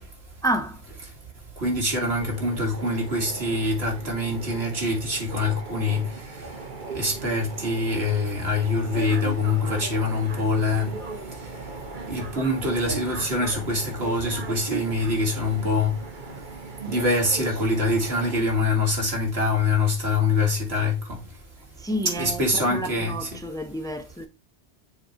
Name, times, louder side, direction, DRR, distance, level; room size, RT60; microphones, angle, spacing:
voice 1, 0.4-0.8 21.8-24.3, right 1 dB, 5° left, 0.7 m, -29 dB
voice 2, 1.6-6.1 6.9-10.9 12.1-16.0 16.9-21.2 22.2-23.4, left 2 dB, 70° right, 2.5 m, -24 dB
sound 1, 2.2-18.4, right 3 dB, 45° right, 1.3 m, -37 dB
6.9 x 3.0 x 5.6 m
omnidirectional pair, 1.1 m